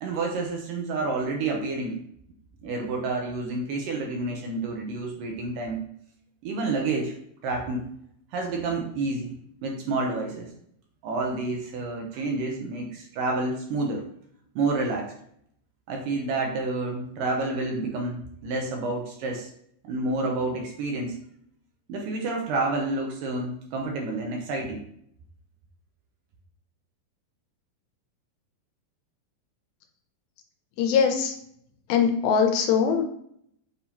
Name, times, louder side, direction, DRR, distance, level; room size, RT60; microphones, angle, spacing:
voice 1, 0.0-2.0 2.6-5.8 6.4-7.1 7.4-7.8 8.3-9.3 9.6-10.5 11.0-14.0 14.6-15.1 15.9-19.5 19.8-21.2 21.9-24.8, right 3 dB, 80° right, 1 dB, 2.1 m, -29 dB
voice 2, 30.8-31.3 31.9-33.1, left 6 dB, 85° left, 5 dB, 2.4 m, -21 dB
6.8 x 2.7 x 2.9 m, 0.68 s
omnidirectional pair, 4.2 m